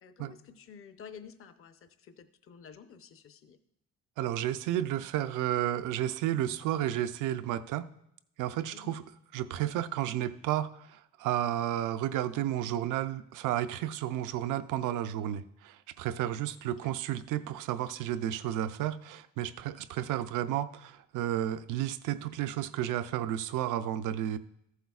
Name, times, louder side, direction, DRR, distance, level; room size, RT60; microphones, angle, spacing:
voice 1, 0.0-3.6 8.7-8.9 16.6-16.9, left 7 dB, 45° left, 9 dB, 0.7 m, -51 dB
voice 2, 4.2-7.9 8.4-9.0 9.3-24.4, right 12 dB, 85° right, 11 dB, 0.5 m, -32 dB
14.0 x 8.0 x 2.4 m, 0.79 s
cardioid pair, 90°, 30 cm